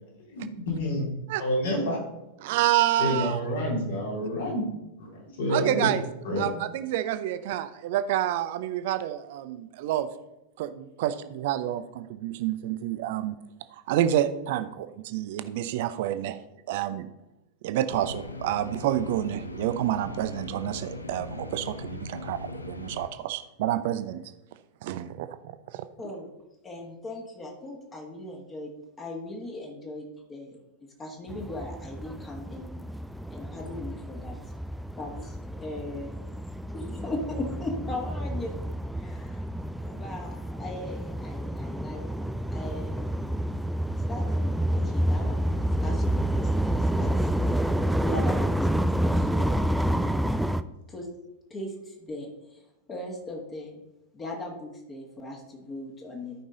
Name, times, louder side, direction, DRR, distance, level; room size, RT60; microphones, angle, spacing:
voice 1, 0.3-1.1 1.4-2.0 3.0-4.7 5.0-5.1 5.4-5.9 6.2-6.5, left 1 dB, 60° left, -1 dB, 3.1 m, -28 dB
voice 2, 2.4-3.4 5.5-6.0 6.4-10.1 10.6-13.4 13.9-16.4 16.7-17.1 17.6-24.2 24.8-25.3 25.7-25.8, right 12 dB, 50° right, 12 dB, 0.6 m, -28 dB
sound 1, 17.9-23.1, left 2 dB, 80° left, 0.7 m, -39 dB
voice 3, 26.0-26.3 26.6-28.7 29.0-30.6 31.0-32.8 33.3-34.3 34.9-36.1 36.7-38.6 38.9-39.4 39.8-43.0 44.1-47.3 48.0-50.1 50.9-51.1 51.5-53.7 54.1-56.3, left 2 dB, 20° left, -1 dB, 1.8 m, -38 dB
sound 2, 31.3-50.6, right 1 dB, ahead, 0.4 m, -29 dB
13.0 x 5.5 x 3.9 m, 0.94 s
figure-of-eight pair, 90°, 0 cm